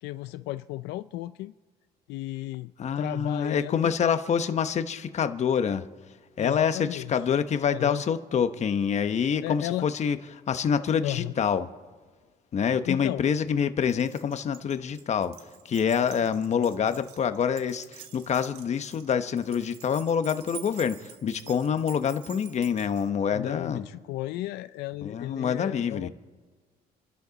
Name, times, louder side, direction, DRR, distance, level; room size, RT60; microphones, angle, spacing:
voice 1, 0.0-1.5 2.1-3.9 6.4-7.2 7.7-8.0 9.4-9.9 11.0-11.3 12.9-13.2 23.3-26.1, left 16 dB, 85° left, 0.5 m, -34 dB
voice 2, 2.8-5.9 6.4-11.7 12.5-15.4 15.6-23.9 25.0-26.1, left 7 dB, 40° left, 1.0 m, -26 dB
Keys jangling, 13.9-23.1, right 10 dB, 85° right, 1.6 m, -48 dB
29.5 x 12.0 x 4.0 m
cardioid pair, 110°, 17 cm